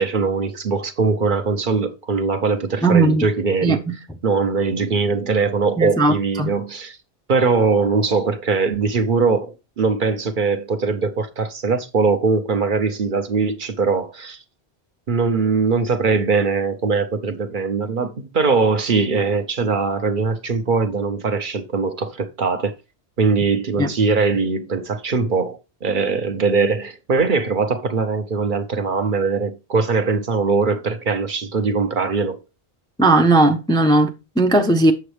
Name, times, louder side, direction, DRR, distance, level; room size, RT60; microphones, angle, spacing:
voice 1, 0.0-3.8 4.2-7.0 7.3-14.4 15.1-22.7 23.2-32.4, right 4 dB, 55° right, 0.9 m, -21 dB
voice 2, 2.8-3.3 3.6-3.9 5.8-6.5 23.8-23.9 33.0-34.9, right 2 dB, 5° left, 0.5 m, -17 dB
7.9 x 6.9 x 3.2 m
omnidirectional pair, 1.1 m